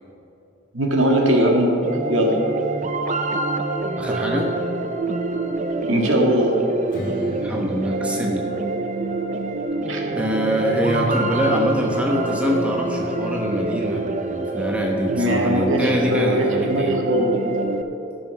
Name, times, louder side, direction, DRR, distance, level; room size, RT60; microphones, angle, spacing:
voice 1, 0.7-1.8 2.1-2.4 5.8-6.6 9.9-10.1 15.1-17.3, equal, 75° right, 0 dB, 1.8 m, -20 dB
sound 1, 1.8-17.8, right 2 dB, 40° right, 0.5 m, -26 dB
voice 2, 4.0-4.5 7.4-8.5 10.1-17.0, equal, 5° right, 0 dB, 1.0 m, -24 dB
Strum, 6.9-12.1, equal, 45° left, 1.7 m, -38 dB
14.0 x 6.4 x 5.9 m, 2.8 s
head